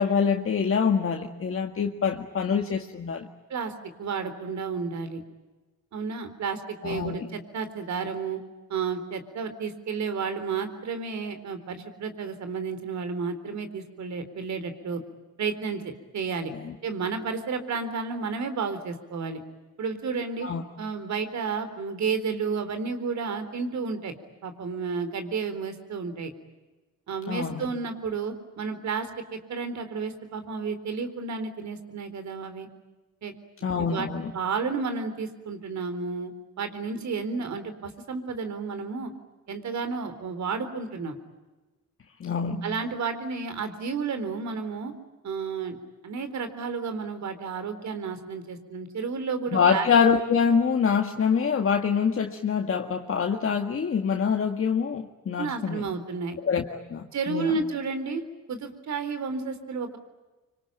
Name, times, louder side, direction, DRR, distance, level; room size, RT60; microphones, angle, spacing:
voice 1, 0.0-3.3 6.8-7.3 16.5-16.7 20.4-20.6 27.3-27.7 33.6-34.3 42.2-42.7 49.5-55.9 56.4-57.5, left 6 dB, 50° left, 3 dB, 1.9 m, -25 dB
voice 2, 4.0-5.2 5.9-8.4 8.7-15.0 15.4-16.5 16.8-19.4 19.8-20.5 20.8-24.1 24.4-26.3 27.1-32.7 33.2-33.3 33.8-34.1 34.3-36.3 36.6-39.1 39.5-41.1 42.6-44.9 45.2-45.8 46.0-49.9 55.4-56.4 57.1-58.2 58.5-60.0, right 5 dB, 70° right, 9 dB, 4.0 m, -31 dB
25.5 x 25.5 x 9.0 m, 1.2 s
cardioid pair, 95°, 29 cm